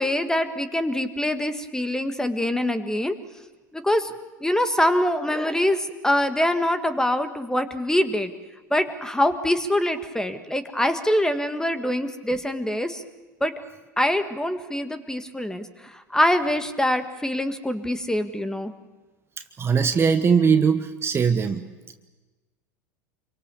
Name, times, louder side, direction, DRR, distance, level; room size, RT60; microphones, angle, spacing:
voice 1, 0.0-3.2 3.7-4.1 4.4-8.3 8.7-13.0 13.4-13.5 14.0-18.7, left 1 dB, 5° left, 10 dB, 1.6 m, -24 dB
voice 2, 19.6-21.7, right 6 dB, 25° right, 8 dB, 1.2 m, -20 dB
27.0 x 24.0 x 6.8 m, 1.2 s
figure-of-eight pair, 80°, 10 cm